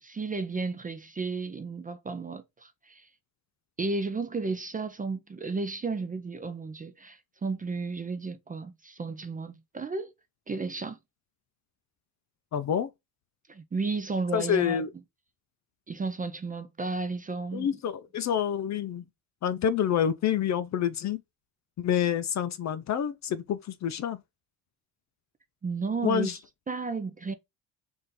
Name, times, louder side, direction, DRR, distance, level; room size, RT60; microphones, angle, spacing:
voice 1, 0.0-3.1 3.8-10.1 10.5-11.0 13.5-14.8 15.9-17.8 25.6-26.4 26.7-27.3, right 3 dB, 20° right, 0.4 m, -33 dB
voice 2, 12.5-12.9 14.3-14.9 17.5-19.0 19.4-21.2 21.8-24.2 26.0-26.4, left 9 dB, 45° left, 0.4 m, -27 dB
3.6 x 2.6 x 4.1 m
cardioid pair, 120°, 42 cm